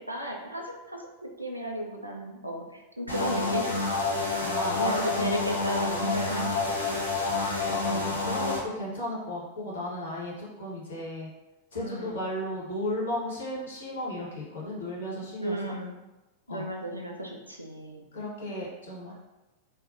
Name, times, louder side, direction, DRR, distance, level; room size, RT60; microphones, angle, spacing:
voice 1, 0.0-3.7 4.8-6.6 11.8-12.2 15.4-15.9 16.5-18.1, equal, 85° right, 1 dB, 0.3 m, -34 dB
sound 1, 3.1-8.6, left 3 dB, 85° left, 0.5 m, -28 dB
voice 2, 4.4-5.1 7.7-11.3 11.7-15.6 16.5-16.6 18.1-19.1, left 1 dB, 65° left, -5 dB, 0.9 m, -34 dB
2.5 x 2.1 x 2.5 m, 1.0 s
figure-of-eight pair, 90°, 0 cm